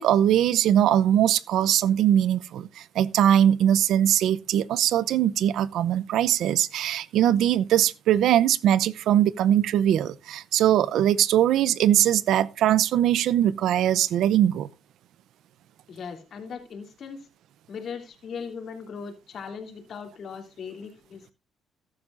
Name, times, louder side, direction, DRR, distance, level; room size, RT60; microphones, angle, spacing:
voice 1, 0.0-14.7, right 11 dB, 80° right, 0.7 m, -21 dB
voice 2, 15.9-17.3 17.7-21.3, left 6 dB, 60° left, 3.3 m, -38 dB
14.0 x 12.0 x 2.5 m
cardioid pair, 90°, 0 cm